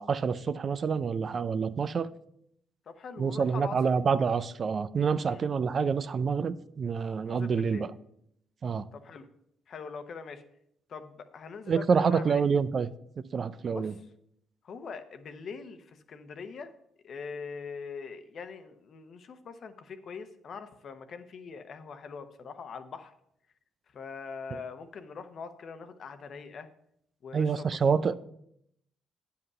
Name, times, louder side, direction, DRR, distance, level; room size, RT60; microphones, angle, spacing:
voice 1, 0.0-2.1 3.2-7.9 8.6-8.9 11.7-12.9 13.3-13.9 24.5-24.6 27.3-28.1, right 6 dB, 50° right, 0.4 m, -27 dB
voice 2, 2.9-3.8 5.3-5.6 7.2-7.9 8.9-9.3 9.7-10.4 10.9-12.4 13.7-13.9 14.6-16.7 17.0-23.1 23.9-26.7 27.2-27.8, left 5 dB, 55° left, 1.0 m, -42 dB
9.3 x 5.6 x 5.5 m
supercardioid pair, 55°, 0 cm